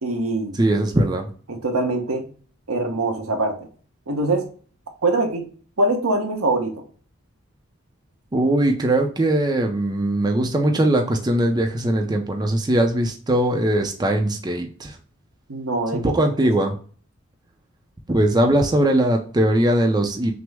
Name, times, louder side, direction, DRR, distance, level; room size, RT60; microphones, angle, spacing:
voice 1, 0.0-0.6 1.5-2.2 2.7-3.6 4.1-4.4 5.0-5.5 5.8-6.8 15.5-16.1, right 2 dB, 85° right, 4 dB, 0.9 m, -23 dB
voice 2, 0.6-1.3 8.3-15.0 15.9-16.7 18.1-20.3, right 1 dB, 20° right, 3 dB, 0.5 m, -20 dB
6.0 x 2.0 x 3.4 m, 0.43 s
head